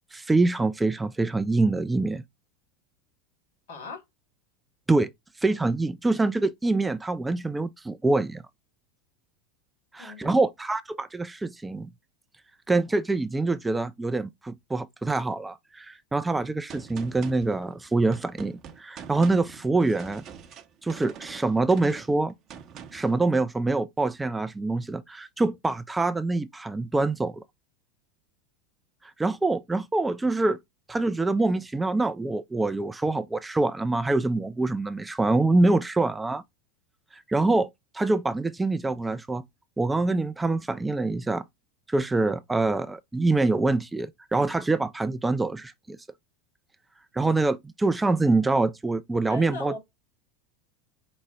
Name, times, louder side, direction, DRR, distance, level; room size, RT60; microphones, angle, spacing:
voice 1, 0.1-2.2 4.9-5.1 5.4-8.4 9.9-11.9 12.7-20.2 20.8-22.3 22.9-27.4 29.0-30.6 30.9-36.4 37.1-39.4 39.8-41.4 41.9-46.0 47.1-49.7, right 2 dB, 10° right, 0.3 m, -25 dB
voice 2, 3.7-4.0 10.0-10.4 49.3-49.8, left 2 dB, 60° left, 3.1 m, -38 dB
Gunshot gunfire, 16.7-23.2, right 7 dB, 35° right, 0.7 m, -45 dB
5.0 x 2.0 x 3.3 m
figure-of-eight pair, 80°, 0 cm